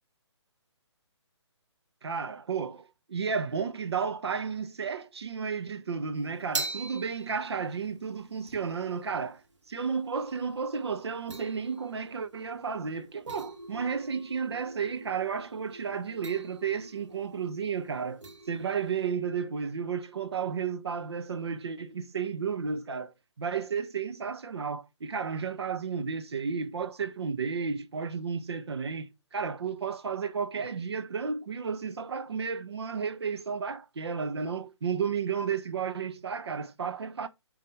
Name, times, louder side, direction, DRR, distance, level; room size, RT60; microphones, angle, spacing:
voice 1, 2.0-9.4 9.7-37.3, right 6 dB, 60° right, 1.0 m, -33 dB
sound 1, 6.2-19.1, right 2 dB, 80° right, 2.2 m, -43 dB
8.4 x 3.9 x 4.7 m
figure-of-eight pair, 140°, 15 cm